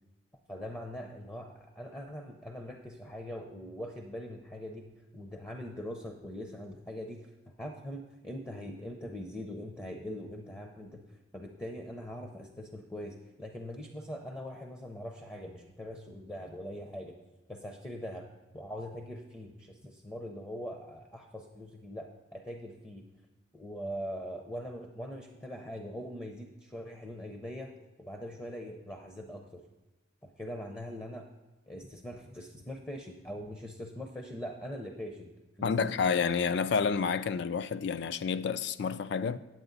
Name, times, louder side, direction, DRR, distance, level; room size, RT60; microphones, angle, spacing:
voice 1, 0.5-4.9 5.1-11.0 11.3-17.2 17.5-18.3 18.5-23.0 23.5-27.7 28.0-29.6 30.2-31.3 31.7-35.3 35.6-36.2, equal, 10° left, 0.6 m, -42 dB
voice 2, 35.6-39.4, left 6 dB, 60° left, 0.4 m, -29 dB
9.1 x 7.8 x 3.9 m
head